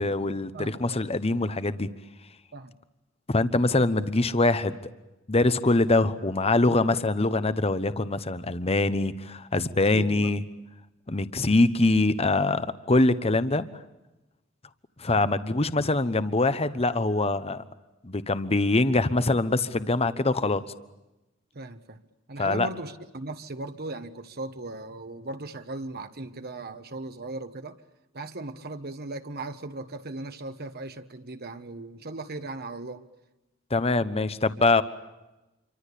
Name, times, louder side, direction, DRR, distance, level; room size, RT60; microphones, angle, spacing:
voice 1, 0.0-1.9 3.3-4.8 5.3-10.4 11.1-13.7 15.0-17.6 18.0-20.6 22.4-22.7 33.7-34.8, left 2 dB, 30° left, 13 dB, 1.1 m, -24 dB
voice 2, 0.5-1.0 2.5-2.8 9.6-10.3 21.5-22.0 22.3-27.8 28.1-33.0, right 2 dB, 50° right, 8 dB, 1.4 m, -38 dB
28.0 x 24.5 x 8.5 m, 1.0 s
head